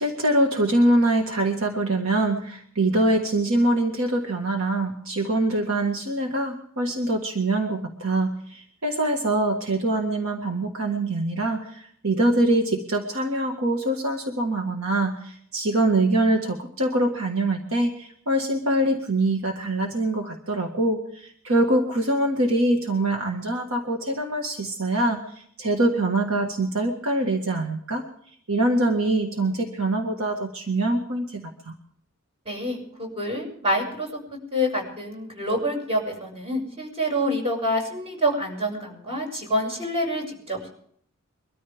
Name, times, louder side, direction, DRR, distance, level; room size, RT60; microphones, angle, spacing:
voice 1, 0.0-28.1 28.5-31.7, right 1 dB, 75° right, 3 dB, 1.8 m, -24 dB
voice 2, 32.4-34.1 34.5-40.7, equal, 30° right, 1 dB, 6.7 m, -27 dB
23.5 x 13.5 x 3.6 m, 0.63 s
head